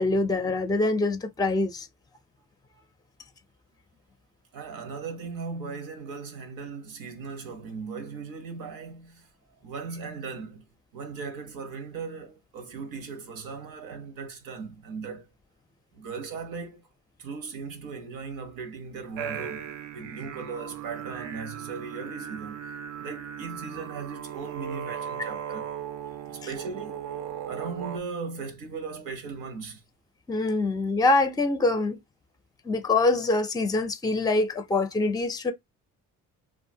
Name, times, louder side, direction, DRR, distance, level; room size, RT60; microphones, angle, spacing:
voice 1, 0.0-1.9 30.3-32.0 32.6-35.5, left 2 dB, 10° left, 0.4 m, -24 dB
voice 2, 4.5-9.3 9.6-10.6 10.9-15.3 15.9-16.9 17.2-22.6 23.0-25.7 26.3-27.0 27.5-29.8, right 5 dB, 85° right, 0.9 m, -38 dB
sound 1, 19.2-28.0, right 9 dB, 60° right, 0.5 m, -37 dB
2.7 x 2.4 x 2.7 m
cardioid pair, 85°, 34 cm